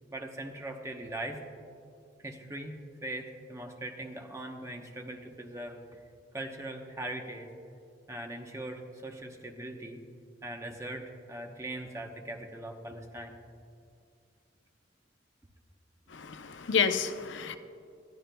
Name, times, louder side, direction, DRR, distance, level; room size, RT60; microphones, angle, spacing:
voice 1, 0.1-1.4 2.2-6.0 6.3-7.5 8.1-10.0 10.4-13.4, right 1 dB, 15° right, 3 dB, 0.9 m, -40 dB
voice 2, 16.1-17.6, left 6 dB, 80° left, 8 dB, 0.6 m, -30 dB
20.0 x 13.5 x 2.3 m, 2.4 s
head